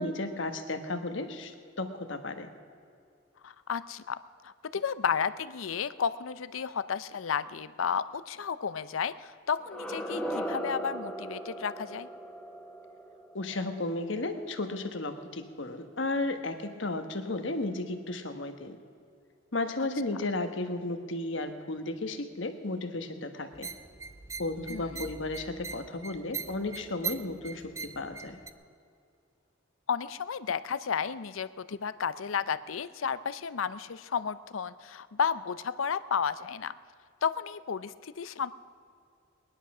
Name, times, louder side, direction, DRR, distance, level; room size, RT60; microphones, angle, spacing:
voice 1, 0.0-2.5 13.3-18.8 19.5-23.7 24.4-28.4, left 2 dB, 65° left, 7 dB, 1.3 m, -34 dB
voice 2, 3.4-4.2 4.4-12.1 24.7-25.0 29.9-36.7 37.2-38.5, left 6 dB, 80° left, 15 dB, 0.6 m, -32 dB
sound 1, 9.6-14.5, equal, 5° left, 1.4 m, -38 dB
sound 2, 23.5-28.5, right 5 dB, 15° right, 0.4 m, -41 dB
20.0 x 11.0 x 6.1 m, 2.4 s
head